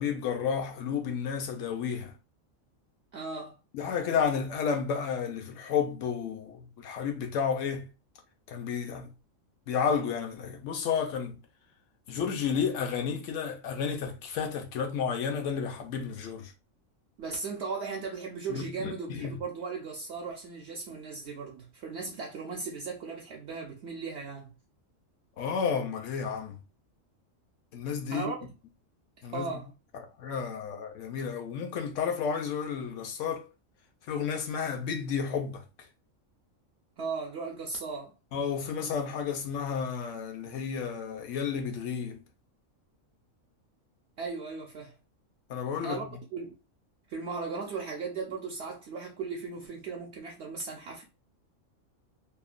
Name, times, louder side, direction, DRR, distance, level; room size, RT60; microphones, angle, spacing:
voice 1, 0.0-2.1 3.7-7.9 8.5-9.1 9.7-11.4 12.1-16.5 18.5-19.4 25.4-26.6 27.7-28.3 29.2-29.5 30.2-33.5 34.1-35.6 38.3-42.2 45.5-46.0, left 6 dB, 70° left, 1.0 m, -31 dB
voice 2, 3.1-3.6 17.2-24.5 28.1-28.4 29.3-29.7 37.0-38.1 44.2-44.9 45.8-46.1 46.3-46.5 47.1-51.0, right 4 dB, 65° right, 0.8 m, -37 dB
2.9 x 2.1 x 2.4 m
omnidirectional pair, 1.4 m